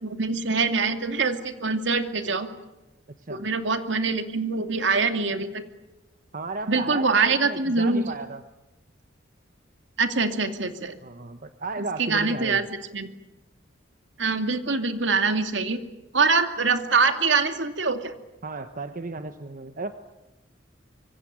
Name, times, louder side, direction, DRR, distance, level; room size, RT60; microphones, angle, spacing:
voice 1, 0.0-2.5 3.3-5.6 6.7-8.1 10.0-11.0 12.0-12.6 12.9-13.1 14.2-15.8 16.1-18.1, right 4 dB, 75° right, 7 dB, 2.6 m, -24 dB
voice 2, 6.3-8.4 11.0-12.6 18.4-19.9, right 3 dB, 50° right, 9 dB, 1.1 m, -34 dB
25.5 x 24.0 x 8.9 m, 1.0 s
head